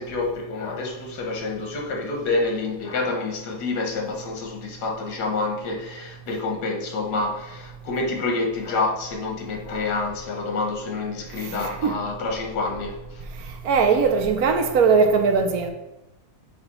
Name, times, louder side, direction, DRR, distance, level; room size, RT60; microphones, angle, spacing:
voice 1, 0.0-13.2, left 3 dB, 80° left, 1.6 m, -28 dB
voice 2, 11.4-12.0 13.6-15.7, right 5 dB, 70° right, 1.1 m, -20 dB
8.2 x 3.4 x 4.1 m
omnidirectional pair, 1.7 m